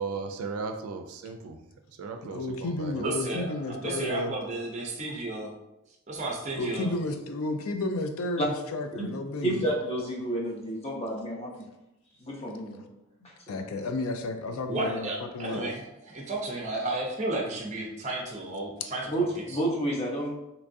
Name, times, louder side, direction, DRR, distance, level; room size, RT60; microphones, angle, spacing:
voice 1, 0.0-1.6 2.0-3.4, right 4 dB, 85° right, 6 dB, 0.4 m, -36 dB
voice 2, 2.2-4.4 6.5-9.6 13.5-15.7 18.8-18.9, left 2 dB, 75° left, 6 dB, 0.4 m, -32 dB
voice 3, 3.0-5.5 6.1-6.9 14.7-19.1, right 2 dB, 30° right, 0 dB, 0.5 m, -33 dB
voice 4, 9.4-11.6 12.2-12.8 13.2-13.6 19.1-20.3, right 1 dB, 30° left, -3 dB, 0.7 m, -30 dB
3.5 x 3.0 x 2.6 m, 0.89 s
head